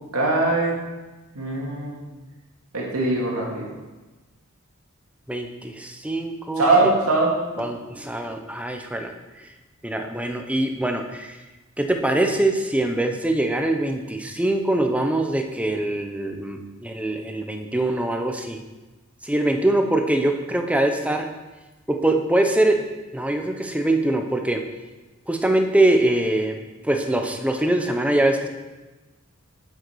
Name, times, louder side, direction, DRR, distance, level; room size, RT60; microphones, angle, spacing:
voice 1, 0.1-0.8 1.3-2.0 2.7-3.7 6.6-7.7, right 2 dB, 85° right, -3 dB, 2.4 m, -21 dB
voice 2, 5.3-6.9 7.6-9.1 9.8-11.4 11.8-18.6 19.2-21.3 21.9-22.8 23.1-24.6 25.3-26.6 26.8-28.5, right 1 dB, 5° right, 4 dB, 0.7 m, -23 dB
8.0 x 8.0 x 4.7 m, 1.2 s
head